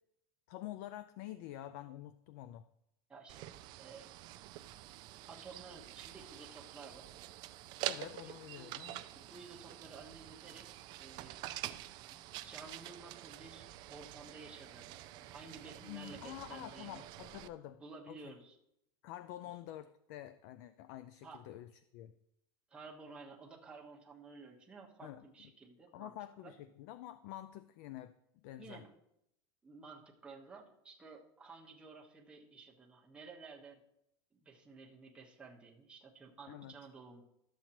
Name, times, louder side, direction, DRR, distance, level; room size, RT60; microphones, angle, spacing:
voice 1, 0.5-2.6 7.8-9.0 15.8-17.8 18.1-18.3 19.0-21.7 21.9-22.1 25.0-25.2 25.9-28.1 28.4-28.8 36.5-36.7, left 13 dB, 45° left, 13 dB, 0.4 m, -48 dB
voice 2, 3.1-3.5 3.8-4.1 5.3-7.1 8.2-8.7 9.1-10.7 11.0-11.4 12.1-17.0 17.8-18.6 21.2-21.4 22.7-26.1 26.4-26.5 28.6-28.9 29.6-33.8 34.3-37.2, right 4 dB, 10° right, -1 dB, 1.1 m, -53 dB
sound 1, 3.3-17.5, right 15 dB, 35° right, 0.3 m, -47 dB
12.0 x 7.3 x 2.9 m, 0.79 s
supercardioid pair, 165°, 13 cm